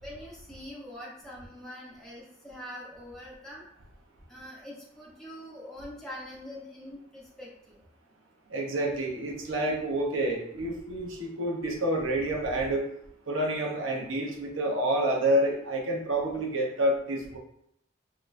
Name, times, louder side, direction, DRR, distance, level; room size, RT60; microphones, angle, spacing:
voice 1, 0.0-3.7 4.3-7.8, equal, ahead, -7 dB, 0.9 m, -44 dB
voice 2, 8.5-12.8 13.3-17.4, right 1 dB, 85° right, -1 dB, 1.0 m, -28 dB
5.3 x 3.0 x 2.6 m, 0.75 s
head